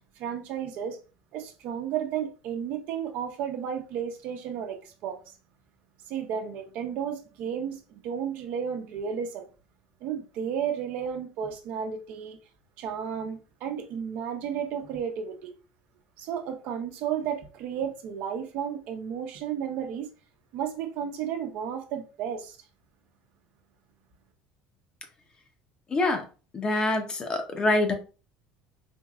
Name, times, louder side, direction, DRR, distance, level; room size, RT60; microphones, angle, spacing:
voice 1, 0.2-1.0 1.3-5.2 6.1-9.5 10.0-12.4 12.8-15.5 16.2-20.1 20.5-22.6, right 8 dB, 65° right, 0.8 m, -33 dB
voice 2, 25.9-26.2 26.5-27.9, left 2 dB, 25° left, 0.8 m, -25 dB
4.4 x 3.0 x 2.4 m
supercardioid pair, 120°, 3 cm